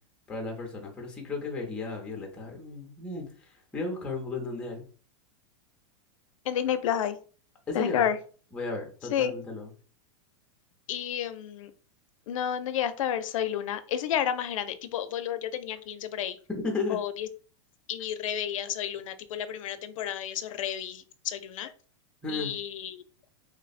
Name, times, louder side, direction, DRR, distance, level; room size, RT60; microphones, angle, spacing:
voice 1, 0.3-4.9 7.7-8.0 8.5-9.7 16.5-17.0 22.2-22.5, left 3 dB, 5° left, 1 dB, 0.5 m, -34 dB
voice 2, 6.5-7.2 7.7-8.2 9.1-9.3 10.9-11.7 12.3-16.4 16.9-17.3 17.9-21.7 22.3-23.0, left 9 dB, 80° left, 11 dB, 0.4 m, -31 dB
3.1 x 2.0 x 4.0 m, 0.40 s
supercardioid pair, 175°, 17 cm